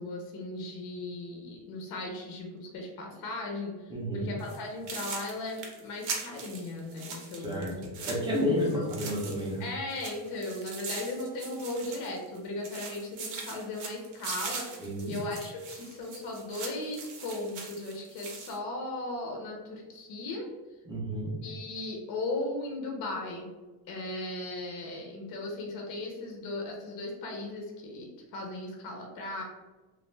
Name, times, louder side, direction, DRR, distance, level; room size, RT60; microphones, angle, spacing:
voice 1, 0.0-3.7 4.1-7.6 8.8-8.9 9.6-20.5 21.4-23.5 23.9-29.4, left 2 dB, 45° left, 0 dB, 0.5 m, -37 dB
voice 2, 3.9-4.3 7.3-7.8 8.0-9.6 14.8-15.2 20.9-21.3, equal, 10° right, -4 dB, 0.4 m, -30 dB
sound 1, 4.4-4.6 4.9-9.6 9.9-12.4 12.6-18.6, right 4 dB, 75° right, 0.8 m, -41 dB
2.3 x 2.1 x 3.1 m, 1.2 s
cardioid pair, 170°, 46 cm